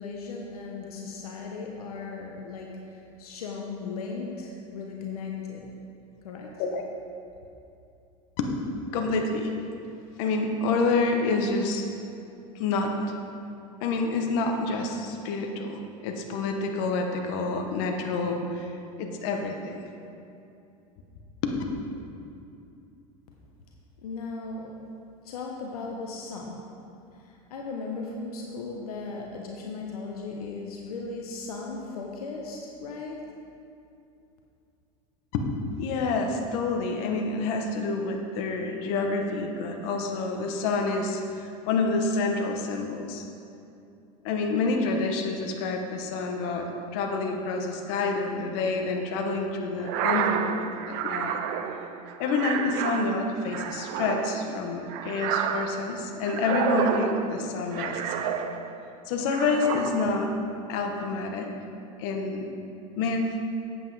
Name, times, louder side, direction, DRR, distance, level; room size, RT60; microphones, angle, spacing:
voice 1, 0.0-5.7 6.2-6.5 24.0-24.8 25.2-26.6 27.1-33.2, left 4 dB, 90° left, 0 dB, 1.0 m, -37 dB
voice 2, 8.9-9.5 10.2-11.9 12.5-13.1 13.8-19.7 21.4-21.5 35.3-35.5 35.8-43.2 44.2-51.4 52.2-58.4 59.1-60.3 60.7-61.5 62.0-62.5 63.0-63.3, left 3 dB, 65° left, 3 dB, 1.3 m, -28 dB
sound 1, 49.8-58.9 59.3-60.3, right 8 dB, 60° right, 0.6 m, -30 dB
8.6 x 8.0 x 4.8 m, 2.6 s
supercardioid pair, 100°, 19 cm